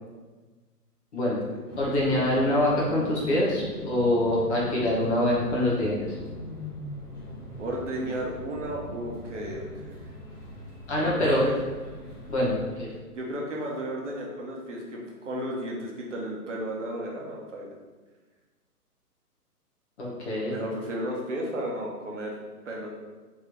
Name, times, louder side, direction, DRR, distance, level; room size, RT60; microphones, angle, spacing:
sound 1, 1.7-12.8, left 1 dB, 70° left, 1.3 m, -40 dB
voice 1, 1.8-6.2 10.9-11.4 12.3-12.9 20.0-20.6, left 1 dB, 45° left, -5 dB, 1.3 m, -25 dB
voice 2, 7.6-10.1 11.0-11.5 13.1-17.8 20.5-22.4 22.6-22.9, right 1 dB, 50° right, -2 dB, 0.8 m, -34 dB
3.6 x 3.2 x 3.1 m, 1.3 s
figure-of-eight pair, 135°, 47 cm